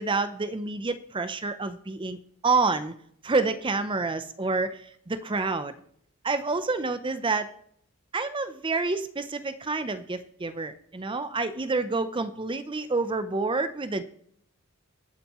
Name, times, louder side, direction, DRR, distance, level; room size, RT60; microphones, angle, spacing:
voice 1, 0.0-2.2 2.4-2.9 3.2-5.7 6.2-7.5 8.1-14.0, right 3 dB, 20° right, 11 dB, 0.6 m, -28 dB
23.0 x 9.1 x 3.1 m, 0.67 s
head